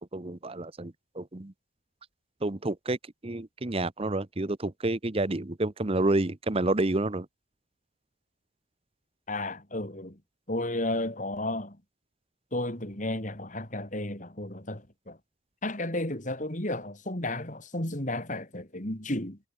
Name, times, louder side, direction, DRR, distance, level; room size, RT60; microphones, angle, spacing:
voice 1, 0.1-1.5 2.4-3.0 3.2-7.3, right 2 dB, 30° right, 0.9 m, -29 dB
voice 2, 9.3-10.2 10.5-11.8 12.5-15.2 15.6-19.4, left 1 dB, 40° left, 3.9 m, -33 dB
head